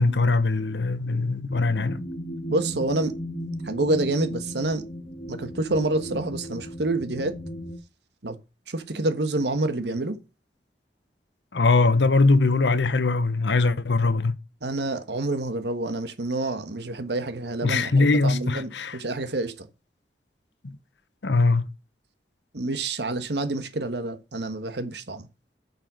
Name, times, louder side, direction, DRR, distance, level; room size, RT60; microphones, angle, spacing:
voice 1, 0.0-2.0 11.5-14.3 17.6-19.0 20.6-20.8 21.2-21.7, left 3 dB, 90° left, 0.8 m, -21 dB
sound 1, 1.5-7.8, equal, 45° left, 1.5 m, -36 dB
voice 2, 2.5-3.1 3.6-4.8 5.3-7.4 8.2-8.4 8.7-10.2 14.6-19.7 22.5-25.3, right 2 dB, 80° right, 1.4 m, -28 dB
9.0 x 5.6 x 6.2 m
head